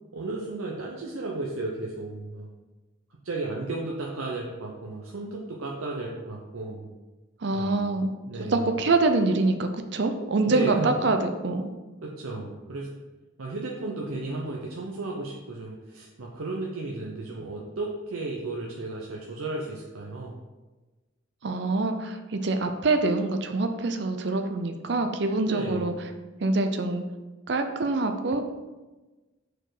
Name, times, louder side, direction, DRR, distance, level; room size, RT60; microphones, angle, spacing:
voice 1, 0.1-2.5 3.2-6.9 7.5-8.0 8.2-8.8 10.5-11.0 12.0-12.9 13.4-20.4 25.4-26.0, right 2 dB, 90° right, -2 dB, 0.8 m, -34 dB
voice 2, 7.4-8.1 8.5-11.7 21.4-25.9 26.4-27.0 27.5-28.5, right 3 dB, 55° right, 6 dB, 0.5 m, -25 dB
6.4 x 4.4 x 4.9 m, 1.2 s
head